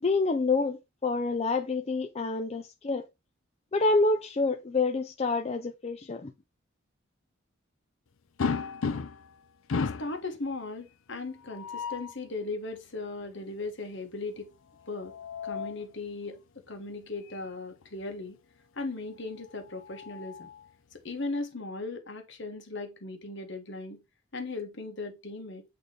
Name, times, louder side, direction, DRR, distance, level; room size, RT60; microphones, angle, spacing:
voice 1, 0.0-3.1 3.7-6.3, left 3 dB, 30° left, 0.5 m, -27 dB
sound 1, 8.4-9.3 9.7-10.2 11.4-12.2 14.8-15.9 17.3-17.5 17.8-17.9 19.5-20.7, left 5 dB, 80° left, 0.6 m, -34 dB
voice 2, 9.8-14.5 14.9-15.1 15.4-16.4 16.7-18.4 18.7-20.5 20.9-24.0 24.3-25.6, left 3 dB, 60° left, 1.5 m, -37 dB
8.6 x 3.4 x 3.8 m
head